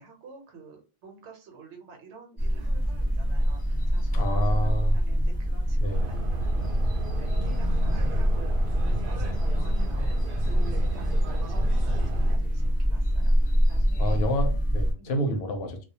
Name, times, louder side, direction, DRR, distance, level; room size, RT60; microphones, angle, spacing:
voice 1, 0.0-14.2 15.0-15.2, right 4 dB, 85° right, 1.1 m, -49 dB
sound 1, 2.4-14.9, equal, 10° left, 1.0 m, -25 dB
voice 2, 4.1-5.0 5.8-6.1 14.0-15.8, equal, 70° left, 0.8 m, -29 dB
sound 2, 5.9-12.4, right 2 dB, 60° right, 0.7 m, -34 dB
2.3 x 2.1 x 2.7 m
omnidirectional pair, 1.1 m